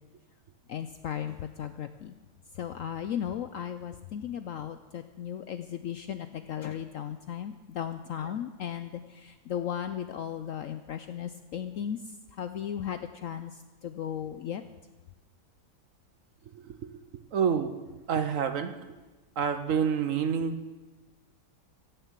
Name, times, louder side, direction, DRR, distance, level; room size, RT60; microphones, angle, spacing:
voice 1, 0.7-2.1 2.6-12.0 12.3-14.6, left 9 dB, 70° left, 9 dB, 0.8 m, -36 dB
voice 2, 16.8-17.7 18.1-18.7 19.4-20.5, right 7 dB, 60° right, 8 dB, 1.0 m, -28 dB
16.0 x 6.9 x 7.4 m, 1.2 s
omnidirectional pair, 1.9 m